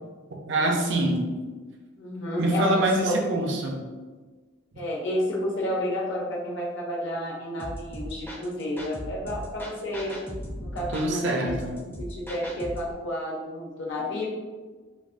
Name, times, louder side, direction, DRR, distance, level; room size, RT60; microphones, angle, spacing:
voice 1, 0.5-1.2 2.4-3.8 4.7-4.8 10.9-11.7 14.0-14.2, right 2 dB, 60° right, 0 dB, 0.6 m, -25 dB
voice 2, 2.0-3.2 4.8-10.2 10.6-11.5 12.0-14.2, left 1 dB, 60° left, -3 dB, 0.7 m, -30 dB
sound 1, 7.6-12.9, equal, 10° left, 0.5 m, -38 dB
5.2 x 2.1 x 2.5 m, 1.4 s
head